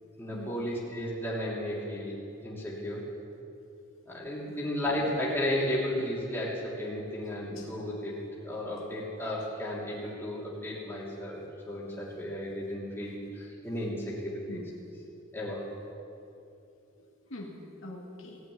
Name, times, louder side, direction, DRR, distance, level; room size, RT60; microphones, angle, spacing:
voice 1, 0.2-2.1 2.4-3.0 4.1-8.1 8.4-14.6 15.3-15.6, left 1 dB, 10° left, -7 dB, 3.1 m, -34 dB
voice 2, 17.0-18.4, left 1 dB, 70° left, -2 dB, 2.1 m, -44 dB
16.0 x 8.9 x 9.5 m, 2.7 s
head